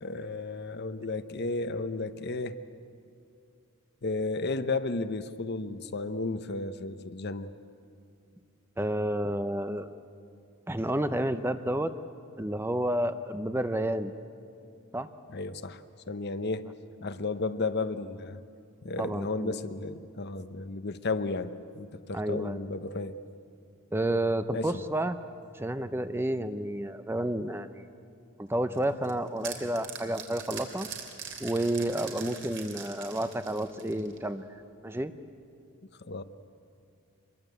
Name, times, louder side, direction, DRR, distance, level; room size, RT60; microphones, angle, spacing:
voice 1, 0.0-2.6 4.0-7.5 15.3-15.8 16.1-16.7 17.0-18.4 18.8-23.2 24.5-24.7 36.0-36.2, left 3 dB, 50° left, 11 dB, 0.8 m, -33 dB
voice 2, 8.8-9.9 10.7-11.9 12.4-14.1 14.9-15.1 19.0-19.6 22.1-22.6 23.9-25.2 25.5-27.9 28.4-30.9 31.4-34.5 34.8-35.1, right 1 dB, 10° right, 11 dB, 0.6 m, -30 dB
sound 1, 28.7-34.3, right 7 dB, 55° right, 3.1 m, -42 dB
25.5 x 22.0 x 8.1 m, 2.5 s
head